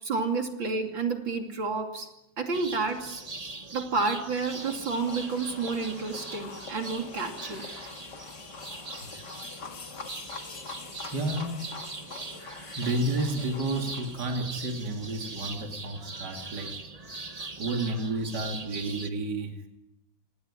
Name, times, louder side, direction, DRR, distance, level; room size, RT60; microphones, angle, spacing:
voice 1, 0.0-2.1 2.4-3.2 3.7-7.7, right 4 dB, 75° right, 4 dB, 3.5 m, -30 dB
sound 1, 2.5-19.1, right 3 dB, 20° right, 1.4 m, -41 dB
sound 2, 4.3-14.4, left 5 dB, 60° left, 2.5 m, -44 dB
voice 2, 11.1-11.7 12.4-16.7 17.6-19.6, right 2 dB, 60° right, 3 dB, 3.2 m, -31 dB
27.0 x 19.0 x 9.9 m, 0.90 s
omnidirectional pair, 2.1 m